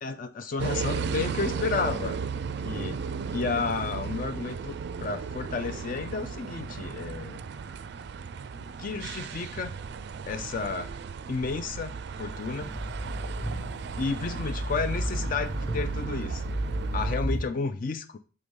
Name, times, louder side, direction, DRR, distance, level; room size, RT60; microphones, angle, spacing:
voice 1, 0.0-2.2 2.6-3.0 3.3-7.4 8.8-9.7 10.3-10.9 11.3-12.7 14.0-16.4 16.9-18.2, left 4 dB, 45° left, 0.4 m, -32 dB
sound 1, 0.6-17.2, right 5 dB, 60° right, 0.4 m, -35 dB
sound 2, 12.3-17.4, right 1 dB, 15° left, 0.9 m, -33 dB
6.6 x 3.4 x 5.3 m
head